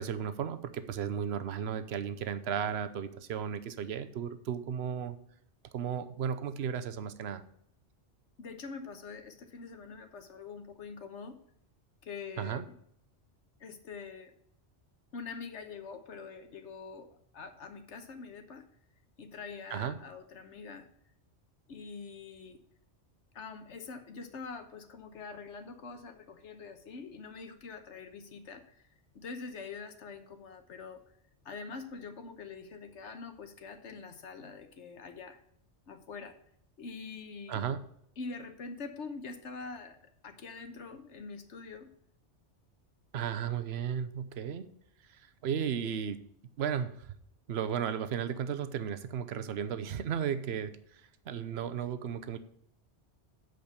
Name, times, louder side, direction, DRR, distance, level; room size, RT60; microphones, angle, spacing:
voice 1, 0.0-5.2 5.7-7.4 12.4-12.6 19.7-20.0 37.5-37.8 43.1-44.6 45.4-46.2 46.6-46.9 47.5-50.7 51.3-52.4, right 8 dB, 65° right, 12 dB, 1.0 m, -34 dB
voice 2, 8.4-11.4 12.0-12.8 13.6-14.3 15.1-18.7 19.2-20.9 21.7-22.6 23.3-28.8 29.1-31.0 31.4-35.4 35.9-36.3 36.8-37.6 38.2-41.9, left 4 dB, 80° left, 8 dB, 1.4 m, -44 dB
8.0 x 5.1 x 6.8 m, 0.69 s
omnidirectional pair, 1.2 m